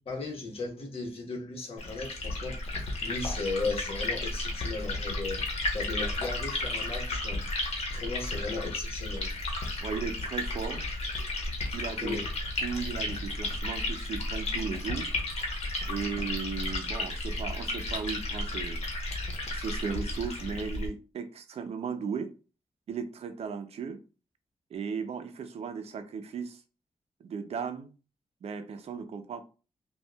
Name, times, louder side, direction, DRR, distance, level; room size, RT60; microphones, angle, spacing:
voice 1, 0.0-2.6 3.0-5.5 5.7-7.4 7.9-9.3 12.0-12.3, left 3 dB, 65° left, 1.1 m, -36 dB
Liquid, 1.8-20.9, left 2 dB, 90° left, 1.0 m, -33 dB
voice 2, 9.8-10.8 11.7-12.2 12.6-15.1 15.9-18.8 19.5-22.3 22.9-24.0 24.7-26.6 27.2-27.9 28.4-29.4, right 6 dB, 80° right, 0.5 m, -36 dB
5.5 x 2.3 x 2.3 m
wide cardioid pair, 115°, 11 cm